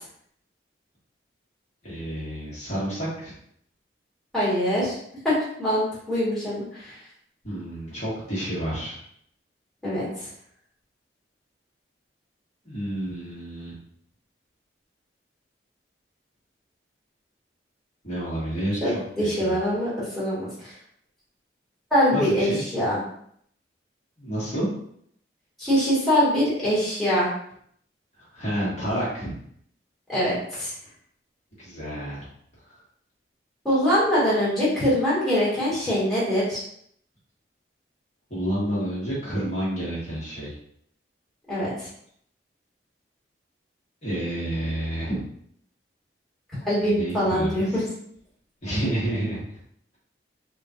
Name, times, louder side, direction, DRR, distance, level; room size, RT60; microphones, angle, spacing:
voice 1, 1.8-3.3 7.4-9.0 12.6-13.7 18.0-19.5 22.1-22.6 24.2-24.7 28.2-29.3 31.6-32.2 32.7-32.8 38.3-40.5 44.0-45.2 47.0-47.6 48.6-49.4, right 1 dB, 40° left, -9 dB, 1.2 m, -29 dB
voice 2, 4.3-5.0 5.2-7.0 9.8-10.1 18.8-20.7 21.9-23.0 25.6-27.3 30.1-30.7 33.6-36.6 41.5-41.9 46.6-47.8, equal, ahead, -10 dB, 1.4 m, -23 dB
3.7 x 2.3 x 2.7 m, 0.67 s
head